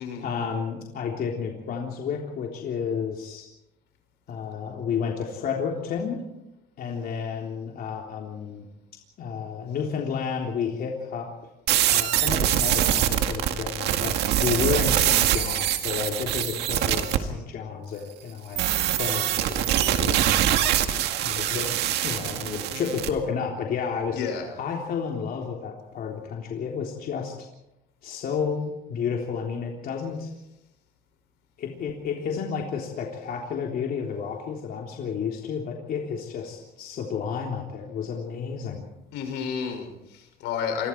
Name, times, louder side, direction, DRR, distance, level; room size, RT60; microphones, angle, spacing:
voice 1, 0.2-3.5 4.3-6.3 6.8-8.7 9.2-11.3 11.9-18.6 18.9-20.5 21.2-21.7 22.0-24.2 24.6-27.3 28.0-30.3 31.6-38.8, left 6 dB, 60° left, 0 dB, 3.5 m, -31 dB
sound 1, 11.7-17.2 18.6-23.1, right 11 dB, 80° right, 2.1 m, -24 dB
voice 2, 24.1-24.5 39.1-40.9, left 6 dB, 90° left, 4 dB, 6.3 m, -31 dB
28.0 x 23.0 x 4.7 m, 0.89 s
cardioid pair, 110°, 17 cm